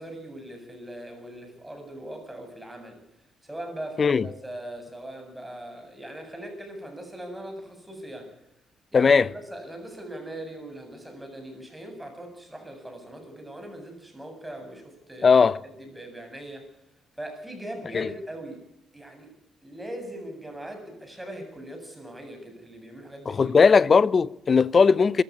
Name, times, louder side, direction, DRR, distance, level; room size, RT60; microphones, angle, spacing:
voice 1, 0.0-3.0 3.4-8.3 8.9-15.4 15.8-16.7 17.2-18.6 18.9-19.3 19.6-23.6, right 1 dB, 10° right, 7.8 m, -40 dB
voice 2, 8.9-9.3 15.2-15.6 17.9-18.1 23.3-25.2, left 5 dB, 40° left, 0.7 m, -18 dB
23.0 x 14.5 x 9.7 m
cardioid pair, 90°, 0 cm